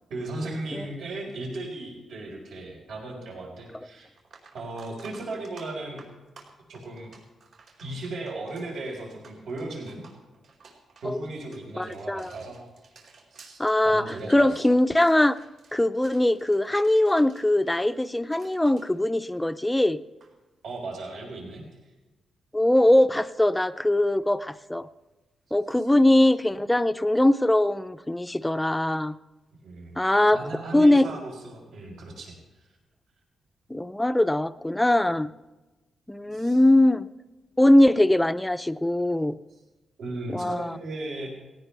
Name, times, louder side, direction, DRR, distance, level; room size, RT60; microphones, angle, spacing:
voice 1, 0.1-4.1 4.5-6.1 6.7-7.1 7.8-10.0 11.0-12.6 13.3-14.7 20.6-21.7 25.8-25.9 29.6-30.0 30.3-32.3 36.3-36.6 40.0-41.3, right 2 dB, 80° right, -1 dB, 4.8 m, -36 dB
sound 1, 3.7-3.8 4.1-19.8 20.0-20.3 22.8-22.9, right 4 dB, 65° right, 4.3 m, -54 dB
voice 2, 11.8-12.3 13.6-15.4 15.7-20.0 22.5-24.9 25.5-29.1 30.0-30.4 30.7-31.1 33.7-35.3 36.1-37.1 37.6-39.4 40.3-40.8, left 1 dB, 5° left, 12 dB, 0.5 m, -21 dB
19.0 x 18.0 x 3.4 m, 1.1 s
wide cardioid pair, 165°, 0 cm